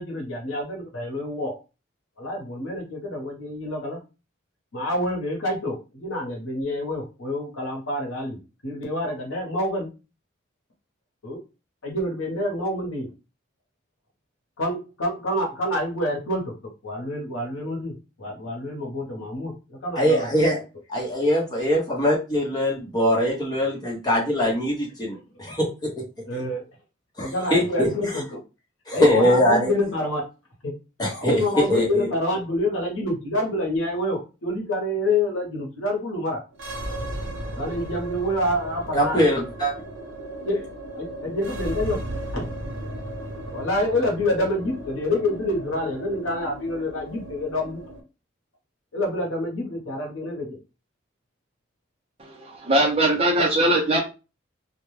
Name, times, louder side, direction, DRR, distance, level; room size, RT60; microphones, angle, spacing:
voice 1, 0.0-1.6 2.2-4.0 4.7-9.9 11.2-11.4 11.8-13.1 14.6-16.5 16.8-20.6 23.1-23.2 26.3-26.6 27.2-28.4 28.9-30.2 30.6-30.7 31.2-36.4 37.5-39.3 40.4-40.6 41.0-42.0 42.3-42.5 43.5-47.8 48.9-50.6 52.9-53.5, left 1 dB, 85° left, 1 dB, 0.9 m, -27 dB
voice 2, 20.0-20.6 20.9-25.9 27.2-27.9 28.9-29.7 31.0-32.1 38.9-39.7, equal, 20° left, -3 dB, 0.8 m, -22 dB
sound 1, 36.5-48.0, right 1 dB, 75° right, 0.6 m, -35 dB
voice 3, 52.4-54.0, right 1 dB, 30° right, 0 dB, 0.6 m, -20 dB
2.3 x 2.2 x 3.1 m, 0.30 s
head